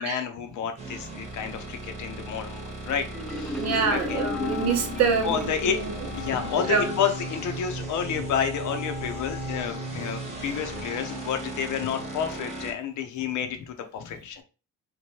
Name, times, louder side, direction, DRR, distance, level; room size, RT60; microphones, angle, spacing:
voice 1, 0.0-4.2 5.2-5.8 6.1-14.4, left 8 dB, 75° left, 6 dB, 0.7 m, -30 dB
sound 1, 0.8-12.7, right 3 dB, 20° right, 1.0 m, -37 dB
Marimba xylophone, 3.1-5.9, left 2 dB, 5° left, 0.4 m, -34 dB
voice 2, 3.6-5.9 6.7-6.9, right 5 dB, 60° right, 4 dB, 0.7 m, -26 dB
Wind instrument woodwind instrument, 4.0-11.7, left 10 dB, 45° left, 0.7 m, -40 dB
2.9 x 2.2 x 3.0 m, 0.34 s
cardioid pair, 90°, 30 cm